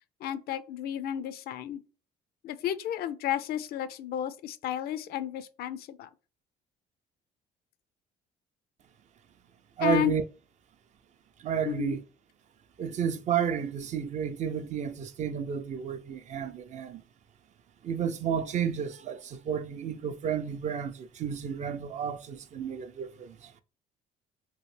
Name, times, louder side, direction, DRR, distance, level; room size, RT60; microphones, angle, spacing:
voice 1, 0.2-1.8 2.4-6.1 9.8-10.1 11.7-12.0, left 10 dB, 65° left, 0.4 m, -32 dB
voice 2, 9.8-10.2 11.4-12.0 12.8-17.0 17.8-23.5, right 7 dB, 45° right, 0.4 m, -31 dB
3.0 x 2.7 x 3.1 m
cardioid pair, 110°, 17 cm